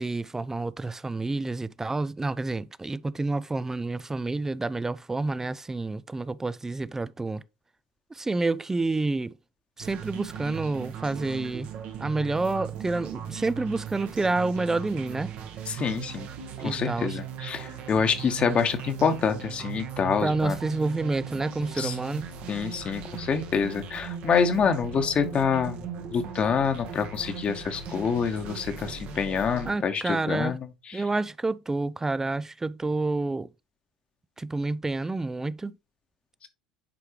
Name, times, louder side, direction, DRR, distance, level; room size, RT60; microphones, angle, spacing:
voice 1, 0.0-7.4 8.1-9.3 9.8-11.7 12.0-15.3 16.6-17.2 20.2-22.3 29.7-30.6 30.9-33.5 34.4-35.7, right 3 dB, 15° right, 0.4 m, -29 dB
sound 1, 9.8-29.7, right 8 dB, 55° right, 1.2 m, -38 dB
voice 2, 15.7-16.3 16.6-20.6 21.7-21.9 22.5-25.8 26.1-31.0, left 6 dB, 35° left, 1.2 m, -27 dB
10.0 x 4.5 x 3.1 m
figure-of-eight pair, 65°, 3 cm